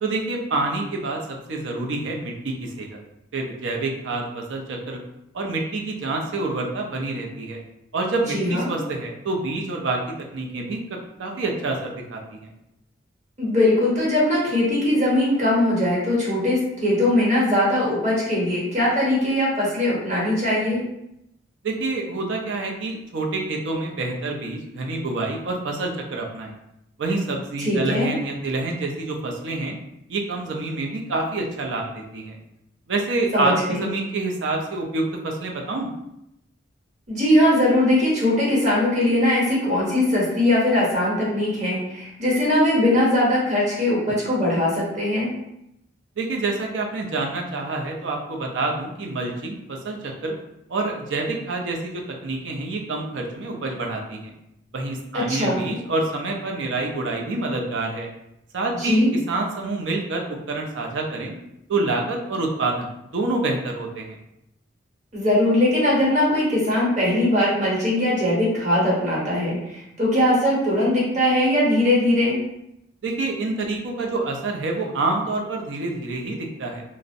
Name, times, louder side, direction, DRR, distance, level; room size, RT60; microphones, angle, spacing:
voice 1, 0.0-1.2 1.5-3.0 3.3-5.0 5.3-7.6 7.9-10.0 10.3-12.5 21.6-26.5 27.0-29.8 30.1-32.4 32.9-35.9 46.2-50.3 50.7-54.3 54.7-58.1 58.5-59.0 59.3-61.3 61.7-64.1 73.0-76.8, right 2 dB, 80° right, 1 dB, 0.4 m, -27 dB
voice 2, 8.3-8.7 13.4-20.8 27.6-28.1 33.3-33.9 37.1-45.3 55.1-55.6 58.7-59.1 65.1-72.4, left 1 dB, 40° right, -6 dB, 0.9 m, -20 dB
2.4 x 2.0 x 2.6 m, 0.82 s
head